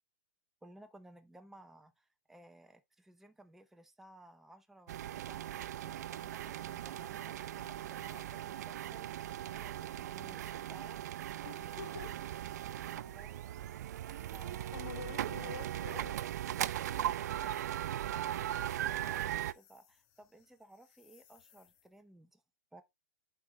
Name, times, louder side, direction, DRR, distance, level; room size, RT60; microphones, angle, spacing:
voice 1, 0.6-11.0 12.9-13.3 14.3-15.2 19.0-22.4 22.7-22.8, right 1 dB, 5° right, 0.7 m, -58 dB
sound 1, 4.9-19.5, right 12 dB, 70° right, 0.4 m, -39 dB
sound 2, 5.9-8.5 11.3-15.1 18.3-22.0, left 9 dB, 45° left, 1.6 m, -69 dB
voice 2, 11.4-12.2 14.7-16.2, left 8 dB, 70° left, 1.1 m, -47 dB
11.0 x 4.5 x 2.3 m
hypercardioid pair, 125°, 9 cm